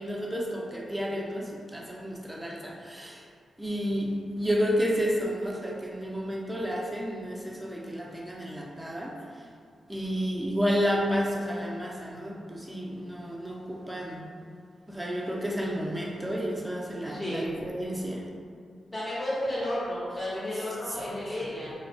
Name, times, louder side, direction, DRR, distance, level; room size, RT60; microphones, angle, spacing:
voice 1, 0.0-3.3 3.6-9.5 9.9-14.2 14.9-18.3 20.9-21.0, equal, 10° right, -2 dB, 0.5 m, -31 dB
voice 2, 17.1-17.5 18.9-21.7, left 1 dB, 20° left, -8 dB, 0.7 m, -32 dB
2.3 x 2.0 x 2.7 m, 2.2 s
supercardioid pair, 45°, 0 cm